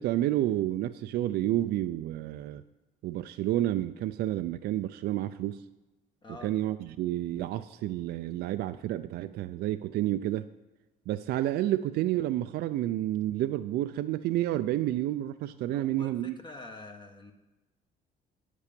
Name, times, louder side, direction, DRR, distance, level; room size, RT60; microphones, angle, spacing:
voice 1, 0.0-2.6 3.0-5.6 6.3-10.5 11.1-16.3, right 13 dB, 70° right, 10 dB, 0.4 m, -30 dB
voice 2, 15.7-17.3, left 2 dB, 30° left, 3 dB, 1.1 m, -46 dB
9.7 x 8.3 x 5.1 m, 1.1 s
cardioid pair, 110°, 17 cm